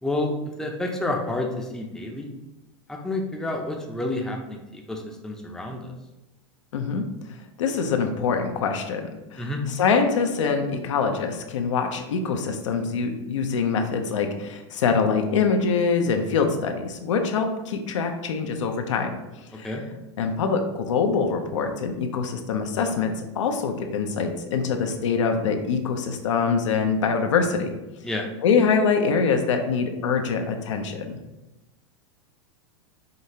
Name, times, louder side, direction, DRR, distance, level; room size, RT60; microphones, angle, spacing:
voice 1, 0.0-2.3 2.9-5.9 9.4-9.6 19.5-19.8 28.0-28.3, left 2 dB, 5° left, 1 dB, 0.5 m, -29 dB
voice 2, 6.7-7.0 7.6-19.2 19.5-19.7 20.2-27.8 28.4-31.2, left 5 dB, 80° left, 5 dB, 0.6 m, -24 dB
5.1 x 2.7 x 2.8 m, 1.0 s
hypercardioid pair, 115°, 15 cm